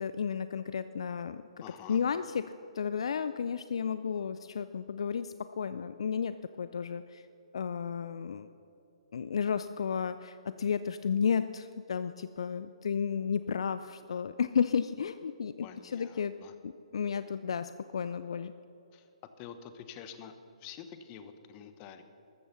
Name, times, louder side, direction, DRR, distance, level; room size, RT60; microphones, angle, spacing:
voice 1, 0.0-1.4 1.9-7.2 7.5-8.5 9.1-16.3 16.6-18.5, left 7 dB, 60° left, 13 dB, 0.4 m, -33 dB
voice 2, 1.6-2.0 15.6-16.5 18.9-19.1 19.4-20.3 20.6-22.0, left 8 dB, 30° left, 10 dB, 1.1 m, -47 dB
14.0 x 13.5 x 5.6 m, 2.9 s
figure-of-eight pair, 130°, 3 cm